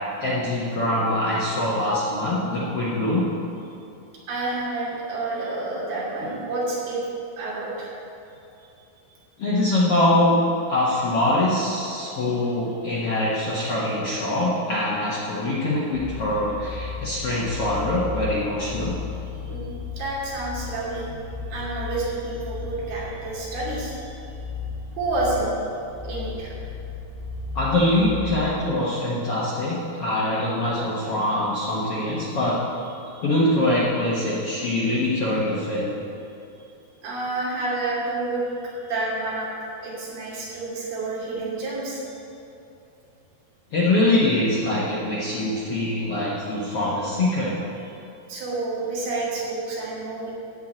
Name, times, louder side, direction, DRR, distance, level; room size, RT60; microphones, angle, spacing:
voice 1, 0.2-3.3 9.4-10.3 10.7-18.9 27.5-32.6 33.2-36.0 43.7-47.6, left 1 dB, 60° left, -7 dB, 1.6 m, -23 dB
voice 2, 4.3-7.0 7.4-7.9 8.6-8.7 12.0-12.1 19.5-21.1 21.5-24.2 25.0-25.5 26.0-26.5 33.0-33.1 37.0-38.5 38.8-42.0 46.5-46.9 48.3-50.3, right 2 dB, 75° right, -7 dB, 4.8 m, -29 dB
sound 1, 15.9-28.7, left 5 dB, 35° left, 0.5 m, -35 dB
13.5 x 4.8 x 8.9 m, 2.8 s
omnidirectional pair, 4.5 m